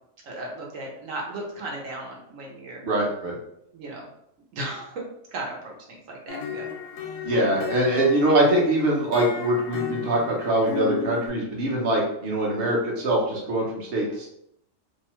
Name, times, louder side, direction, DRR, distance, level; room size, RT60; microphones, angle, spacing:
voice 1, 0.2-2.8 3.7-4.1 4.5-5.0 5.3-6.7, right 2 dB, 80° right, -2 dB, 1.1 m, -35 dB
voice 2, 2.8-3.3 7.2-14.3, right 1 dB, 50° right, -3 dB, 0.9 m, -23 dB
sound 1, 6.3-11.3, left 8 dB, 90° left, 1.0 m, -34 dB
2.7 x 2.2 x 2.9 m, 0.75 s
omnidirectional pair, 1.3 m